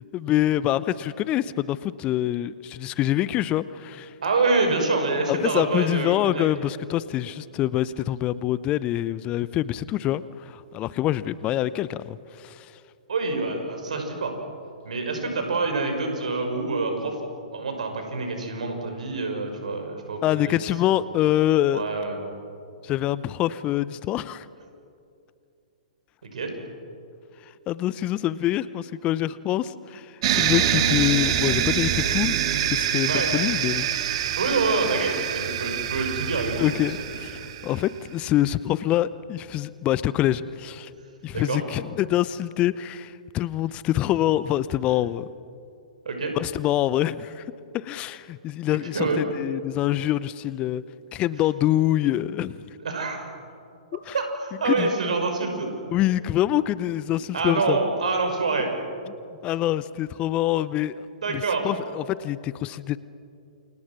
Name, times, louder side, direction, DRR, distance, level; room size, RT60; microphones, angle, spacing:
voice 1, 0.1-4.1 5.3-12.7 20.2-21.8 22.8-24.5 27.7-34.1 36.6-40.9 41.2-45.3 46.3-47.4 47.7-50.8 51.1-52.6 53.9-54.1 54.6-54.9 55.9-57.8 59.4-63.0, left 13 dB, 30° left, 18 dB, 0.7 m, -25 dB
voice 2, 4.2-6.5 13.1-14.3 14.8-17.2 17.5-20.6 21.7-22.2 26.2-26.5 33.0-33.3 34.4-36.7 41.3-41.6 46.0-46.3 48.9-49.2 52.8-53.2 54.1-55.7 57.3-58.7 61.2-61.7, right 3 dB, 65° right, 4 dB, 5.8 m, -26 dB
sound 1, 30.2-37.8, right 10 dB, 50° right, 2.2 m, -25 dB
29.0 x 28.0 x 6.2 m, 2.5 s
figure-of-eight pair, 110°, 4 cm